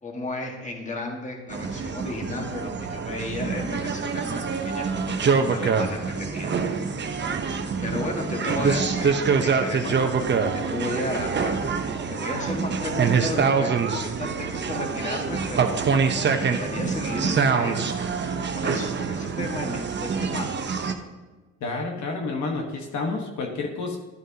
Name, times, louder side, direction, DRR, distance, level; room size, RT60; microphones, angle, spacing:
voice 1, 0.0-6.5 7.8-11.8 12.1-15.8 16.3-17.8 18.5-20.6, left 2 dB, 25° left, 1 dB, 1.7 m, -34 dB
sound 1, 1.5-20.9, right 5 dB, 35° right, 0.9 m, -25 dB
voice 2, 21.6-24.0, left 3 dB, 70° left, 1 dB, 1.4 m, -29 dB
12.5 x 9.0 x 2.9 m, 1.2 s
cardioid pair, 90°, 30 cm